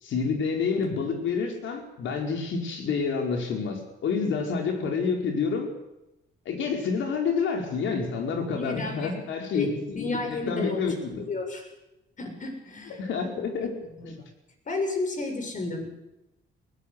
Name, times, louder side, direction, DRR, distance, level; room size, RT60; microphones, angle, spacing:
voice 1, 0.0-5.7 6.4-11.2 12.9-13.8, left 5 dB, 75° left, 3 dB, 5.2 m, -28 dB
voice 2, 8.6-9.2 9.5-11.7 12.2-13.3 13.6-13.7 14.0-14.3 14.7-16.0, left 3 dB, 40° left, 4 dB, 7.1 m, -32 dB
20.0 x 18.0 x 8.4 m, 0.92 s
cardioid pair, 90°, 20 cm